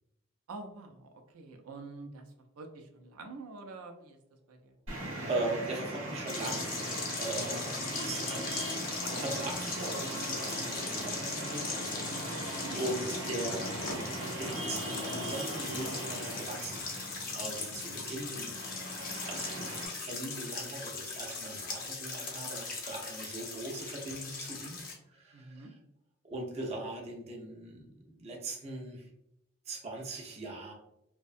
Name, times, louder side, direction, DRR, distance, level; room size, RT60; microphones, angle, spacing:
voice 1, 0.5-4.2 4.5-4.7 7.9-8.1 12.6-12.8 17.9-18.3 25.3-25.7, right 3 dB, 90° right, 4 dB, 0.4 m, -47 dB
voice 2, 4.9-12.4 12.7-18.9 19.1-19.7 20.0-24.8 25.1-25.8 26.2-29.1 29.7-30.7, right 2 dB, 30° right, -1 dB, 0.4 m, -40 dB
Traffic noise roadway noise, 4.9-19.9, right 1 dB, 70° right, 0.8 m, -39 dB
sound 1, 6.3-24.9, left 4 dB, 40° left, 0.5 m, -39 dB
2.6 x 2.1 x 2.4 m, 0.81 s
head